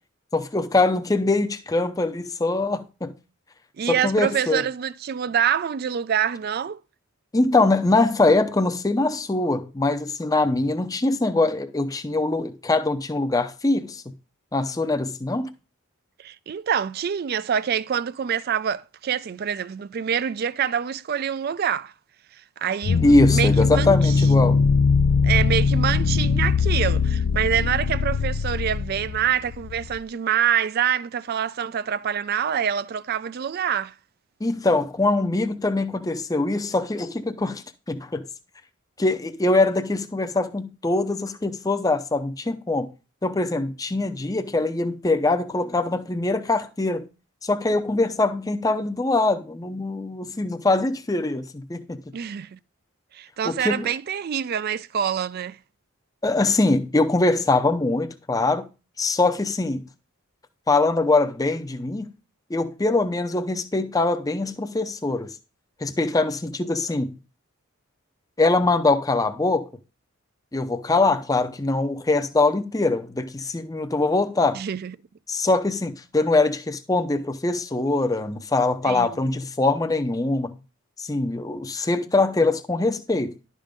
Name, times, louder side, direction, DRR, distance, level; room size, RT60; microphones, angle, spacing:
voice 1, 0.3-3.2 3.9-4.6 7.3-14.0 14.5-15.5 23.0-24.6 34.4-38.2 39.0-42.9 43.2-47.0 47.4-52.0 53.4-53.9 56.2-58.6 59.0-59.8 60.7-62.1 62.5-65.3 65.8-67.2 68.4-69.7 70.5-74.6 75.3-80.6 81.0-83.3, left 2 dB, 15° left, 0.5 m, -23 dB
voice 2, 3.8-6.8 16.2-21.9 22.6-24.3 25.2-33.9 52.1-52.6 53.1-55.6 74.5-75.0 78.8-79.2, right 8 dB, 45° right, 0.3 m, -26 dB
sound 1, 22.8-30.0, left 5 dB, 80° left, 0.4 m, -21 dB
11.0 x 3.7 x 5.1 m
head